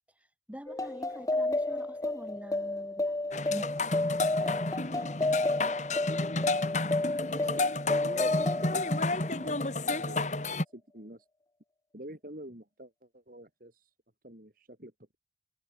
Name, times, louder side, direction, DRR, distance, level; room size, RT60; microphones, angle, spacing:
voice 1, 0.5-3.7, equal, 10° right, 7.7 m, -45 dB
sound 1, 0.7-9.7, left 2 dB, 20° left, 0.4 m, -31 dB
sound 2, 3.3-10.6, left 2 dB, 40° left, 2.2 m, -31 dB
voice 2, 7.3-7.8 8.0-10.4 10.7-11.3 11.9-13.9 14.2-15.2, right 1 dB, 50° right, 3.3 m, -48 dB
head